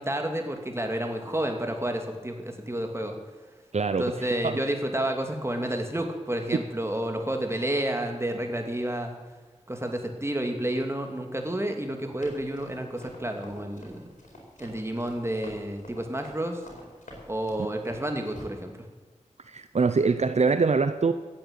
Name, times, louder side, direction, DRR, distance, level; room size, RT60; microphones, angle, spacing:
voice 1, 0.0-3.2 4.0-9.2 9.7-14.1 14.6-16.6 17.2-18.7, right 1 dB, 20° right, 4 dB, 2.5 m, -30 dB
voice 2, 3.7-4.1 4.4-4.6 19.5-21.1, right 4 dB, 65° right, 10 dB, 0.7 m, -23 dB
Run, 12.2-18.5, left 1 dB, 80° left, 4.9 m, -47 dB
15.5 x 8.8 x 8.8 m, 1.4 s
wide cardioid pair, 55°, 13 cm